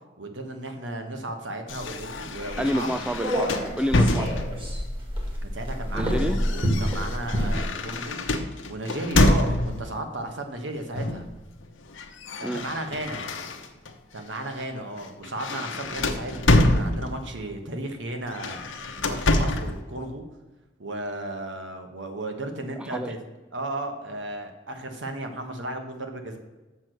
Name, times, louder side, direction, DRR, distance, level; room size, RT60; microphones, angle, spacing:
voice 1, 0.2-3.1 5.4-8.2 8.7-11.3 12.4-13.3 14.1-18.6 19.0-20.2 20.8-23.2 23.5-26.4, right 1 dB, 65° right, 5 dB, 1.4 m, -34 dB
sound 1, 1.7-4.8 5.7-9.9 11.0-11.3 11.6-13.9 14.4-14.6 15.0-17.4 18.3-19.8, left 1 dB, 75° left, 1.0 m, -26 dB
sound 2, 2.4-7.6, equal, 25° right, 1.9 m, -28 dB
voice 2, 2.6-4.3 5.9-6.4 12.4-12.6 22.8-23.1, equal, 5° right, 7 dB, 0.4 m, -29 dB
7.1 x 6.2 x 6.7 m, 1.2 s
head